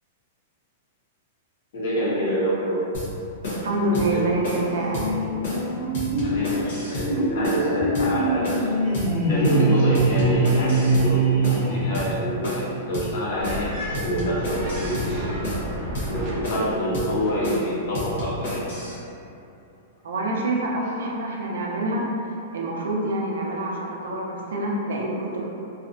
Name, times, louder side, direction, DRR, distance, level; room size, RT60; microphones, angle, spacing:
voice 1, 1.7-2.8 3.9-4.3 6.2-8.8 9.3-11.4 11.7-18.7, equal, 55° left, -5 dB, 0.6 m, -27 dB
sound 1, 2.9-3.1 3.4-3.7 3.9-4.1 4.4-4.7 4.9-5.1 5.4-5.7 5.9-7.1 7.4-7.7 7.9-8.1 8.4-8.7 8.9-9.1 9.4-9.7 9.9-11.1 11.4-11.7 11.9-12.1 12.4-12.7 12.9-13.1 13.4-13.7 13.9-15.1 15.4-15.7 15.9-16.1 16.4-16.7 16.9-17.1 17.4-17.7 17.9-18.9, left 1 dB, 75° left, 0.9 m, -31 dB
voice 2, 3.5-5.1 20.0-22.1 22.5-25.4, right 1 dB, 80° right, -2 dB, 0.4 m, -26 dB
sound 2, 4.8-12.4, right 2 dB, ahead, 0.7 m, -23 dB
sound 3, 13.4-17.4, right 1 dB, 20° right, 0.3 m, -32 dB
2.6 x 2.1 x 2.5 m, 2.7 s
supercardioid pair, 180°, 0 cm